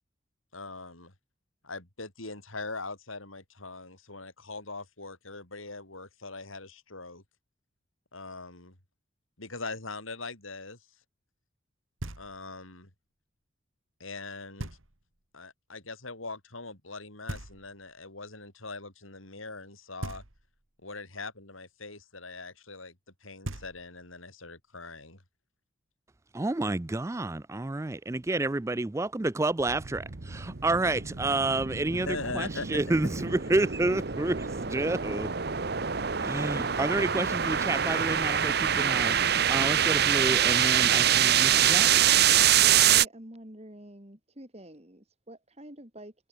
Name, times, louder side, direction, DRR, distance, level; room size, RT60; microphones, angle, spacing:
voice 1, 0.5-1.1 1.6-7.2 8.1-8.8 9.4-10.8 12.2-12.9 14.0-14.7 15.3-20.2 20.8-23.0 23.2-25.2 32.0-32.7, left 3 dB, 85° left, 6.6 m, -41 dB
Knock, 12.0-12.7 14.6-15.2 17.3-18.1 20.0-20.8 23.1-23.2 23.4-24.2, right 1 dB, 80° right, 2.7 m, -41 dB
voice 2, 26.3-35.3 36.2-42.0, right 2 dB, 15° right, 0.4 m, -30 dB
sound 1, 29.7-43.1, right 9 dB, 50° right, 1.0 m, -25 dB
voice 3, 42.8-46.1, right 1 dB, 30° right, 3.2 m, -47 dB
head